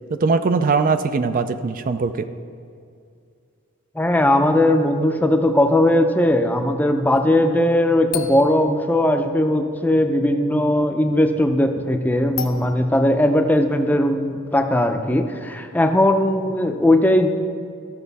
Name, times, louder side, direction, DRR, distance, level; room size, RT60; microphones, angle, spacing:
voice 1, 0.1-2.3, right 4 dB, 45° right, 10 dB, 0.4 m, -20 dB
voice 2, 4.0-17.3, left 1 dB, 10° left, 5 dB, 0.5 m, -18 dB
sound 1, 8.1-9.5 12.4-12.9 13.6-13.7, left 8 dB, 70° left, 0.6 m, -33 dB
14.0 x 6.3 x 4.1 m, 2.3 s
head